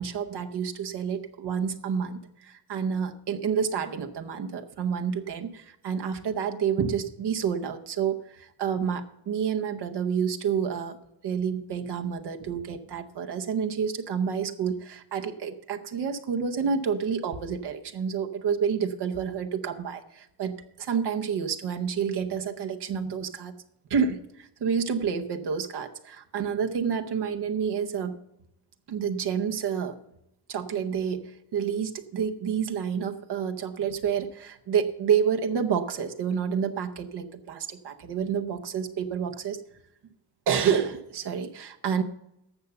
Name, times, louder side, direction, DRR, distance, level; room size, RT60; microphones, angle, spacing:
voice 1, 0.0-11.0 11.2-23.5 23.9-28.2 28.9-30.0 30.5-39.6 40.5-42.0, right 7 dB, 85° right, 6 dB, 1.0 m, -29 dB
11.5 x 6.8 x 6.8 m, 0.83 s
supercardioid pair, 45°, 39 cm